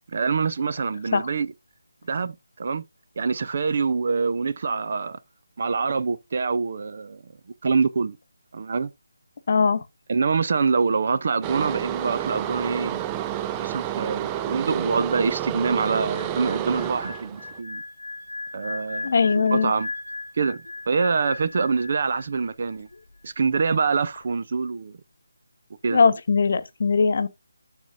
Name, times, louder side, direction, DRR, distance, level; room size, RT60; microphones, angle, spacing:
voice 1, 0.0-1.5 2.0-2.8 3.2-5.2 5.6-7.3 7.6-8.2 8.5-8.9 10.1-13.0 13.6-17.8 18.5-19.9 20.4-22.9 23.2-25.0 25.8-26.1, right 4 dB, 50° right, 0.7 m, -25 dB
voice 2, 9.5-9.8 19.0-19.7 25.9-27.3, left 5 dB, 50° left, 1.1 m, -20 dB
sound 1, 11.4-17.6, right 11 dB, 15° right, 0.3 m, -30 dB
sound 2, 16.1-22.5 22.7-23.0, left 3 dB, 85° left, 0.8 m, -37 dB
13.0 x 4.4 x 2.7 m
figure-of-eight pair, 160°, 0 cm